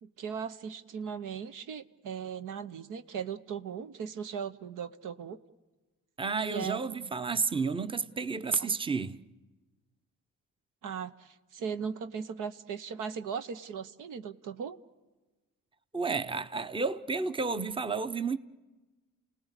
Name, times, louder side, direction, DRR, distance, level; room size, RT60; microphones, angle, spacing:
voice 1, 0.0-5.4 6.5-7.1 8.6-8.7 10.8-14.8, right 7 dB, 70° right, 0.9 m, -38 dB
voice 2, 6.2-9.2 15.9-18.4, right 4 dB, 15° right, 0.8 m, -31 dB
29.5 x 18.5 x 8.2 m
supercardioid pair, 60°, 32 cm